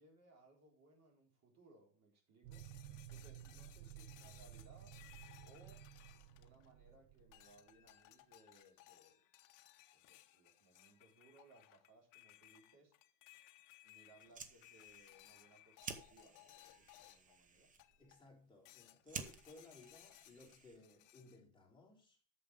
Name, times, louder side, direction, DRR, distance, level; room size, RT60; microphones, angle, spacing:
voice 1, 0.0-2.7 3.1-5.0 5.4-5.9 6.4-9.2 9.9-12.9 13.8-17.7, right 2 dB, 30° right, 3.9 m, -66 dB
sound 1, 2.4-7.9, right 12 dB, 60° right, 0.7 m, -55 dB
sound 2, 2.5-6.9 7.3-17.4 17.8-18.3 18.6-21.4, left 16 dB, 40° left, 0.8 m, -63 dB
Fire, 14.1-21.0, right 5 dB, 15° right, 0.8 m, -53 dB
voice 2, 18.0-22.2, left 2 dB, 10° left, 3.3 m, -61 dB
8.7 x 6.9 x 4.9 m
supercardioid pair, 140°, 49 cm